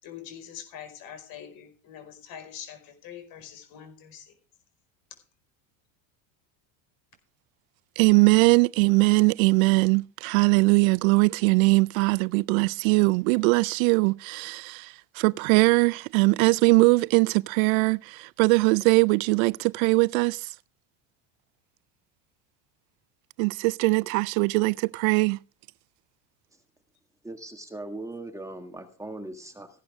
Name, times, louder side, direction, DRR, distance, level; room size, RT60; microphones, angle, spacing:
voice 1, 0.0-4.3, left 9 dB, 55° left, 5.0 m, -44 dB
voice 2, 8.0-20.5 23.4-25.4, right 27 dB, 80° right, 0.5 m, -21 dB
voice 3, 27.2-29.7, right 2 dB, 10° right, 1.8 m, -39 dB
16.0 x 11.5 x 3.5 m
supercardioid pair, 120°, 41 cm